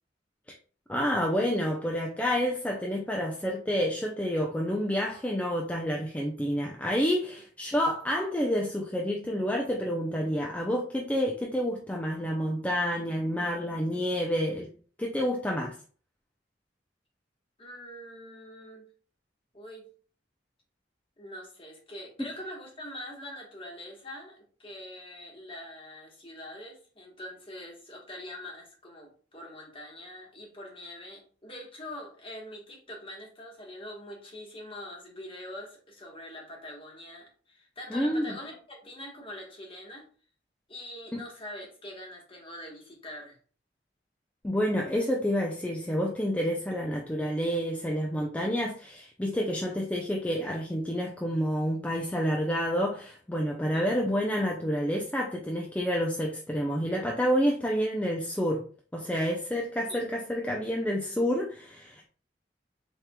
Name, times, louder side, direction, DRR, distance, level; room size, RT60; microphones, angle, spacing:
voice 1, 0.9-14.7 15.0-15.8 22.2-22.3 37.9-38.2 41.1-41.2 44.4-58.6 58.9-62.1, equal, 10° left, 0 dB, 0.4 m, -29 dB
voice 2, 17.6-18.9 19.5-19.9 21.2-40.1 40.7-43.4 53.7-53.9 59.9-60.0, left 1 dB, 30° left, 0 dB, 1.2 m, -44 dB
4.4 x 3.5 x 2.2 m, 0.41 s
head